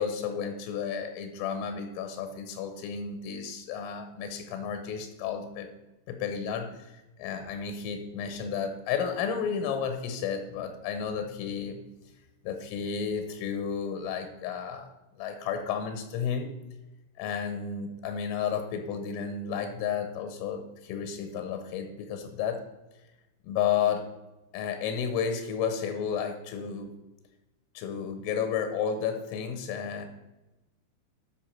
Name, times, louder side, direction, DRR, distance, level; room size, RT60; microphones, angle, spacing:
voice 1, 0.0-5.7 6.1-6.9 7.2-11.8 12.4-14.9 15.2-16.5 17.2-22.6 23.4-24.1 24.5-26.9 27.7-30.1, left 7 dB, 85° left, 7 dB, 3.3 m, -32 dB
13.0 x 5.3 x 4.3 m, 1.0 s
omnidirectional pair, 5.8 m